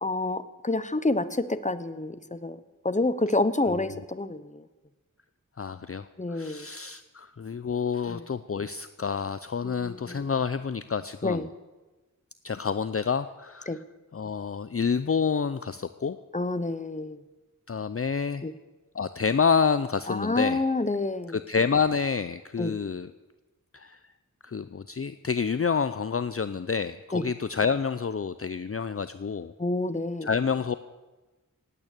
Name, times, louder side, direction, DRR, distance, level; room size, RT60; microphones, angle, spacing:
voice 1, 0.0-2.6 2.8-4.6 6.2-6.7 8.1-8.2 9.6-10.2 11.2-11.5 13.7-13.8 16.3-17.2 18.4-18.5 20.1-21.4 22.6-22.8 27.1-27.2 29.6-30.3, left 2 dB, 25° left, 13 dB, 0.9 m, -28 dB
voice 2, 3.7-4.0 5.6-11.5 12.4-13.8 14.1-16.2 17.7-18.4 18.9-20.6 21.3-23.1 23.7-24.0 24.4-29.5 30.2-30.7, left 6 dB, 45° left, 12 dB, 0.5 m, -28 dB
17.5 x 9.2 x 8.3 m, 1.2 s
wide cardioid pair, 45°, 32 cm